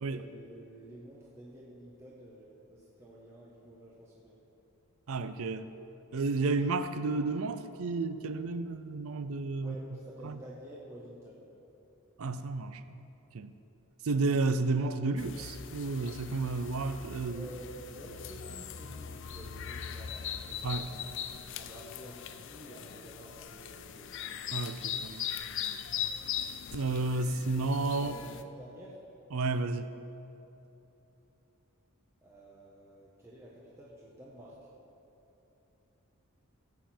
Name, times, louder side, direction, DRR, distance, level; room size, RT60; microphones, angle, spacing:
voice 1, 0.1-4.4 9.6-11.5 17.3-21.2 21.6-24.1 28.0-29.0 32.2-34.6, right 1 dB, 15° right, -6 dB, 1.1 m, -50 dB
voice 2, 5.1-5.7 6.1-9.7 10.2-10.4 12.2-13.1 13.3-13.5 14.0-17.5 20.6-20.9 24.5-25.3 26.7-28.1 29.3-29.9, right 3 dB, 75° right, 11 dB, 0.5 m, -32 dB
sound 1, 15.2-28.4, left 8 dB, 55° left, 0.5 m, -40 dB
16.0 x 8.1 x 4.4 m, 3.0 s
head